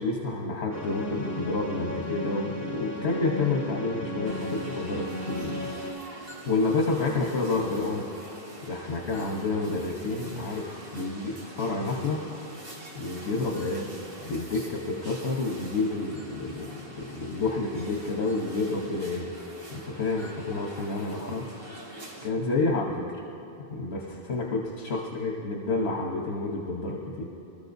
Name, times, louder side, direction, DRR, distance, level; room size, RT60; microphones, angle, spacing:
voice 1, 0.0-5.7 6.5-8.3 8.7-12.2 12.9-13.9 14.2-19.3 19.7-21.4 22.2-23.0 23.7-24.0 24.3-27.3, left 3 dB, 75° left, -1 dB, 1.3 m, -29 dB
sound 1, 0.7-5.9, equal, 45° left, 4.4 m, -35 dB
sound 2, 4.2-22.3, right 1 dB, 60° right, 1.6 m, -45 dB
25.5 x 13.5 x 2.7 m, 2.9 s
omnidirectional pair, 1.1 m